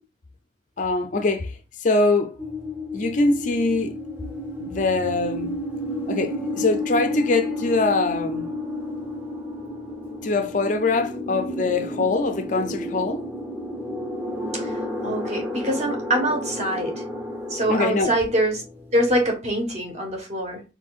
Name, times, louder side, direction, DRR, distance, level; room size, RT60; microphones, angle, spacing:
voice 1, 0.8-1.5 1.8-2.4 2.9-4.0 4.6-5.6 6.1-8.5 10.2-13.2 17.7-18.1, left 3 dB, 40° left, 0.4 m, -23 dB
sound 1, 2.4-19.3, left 1 dB, 10° right, 0.8 m, -32 dB
voice 2, 14.5-17.0 17.5-18.6 18.9-20.6, right 1 dB, 35° right, 1.4 m, -24 dB
4.3 x 4.2 x 2.4 m
head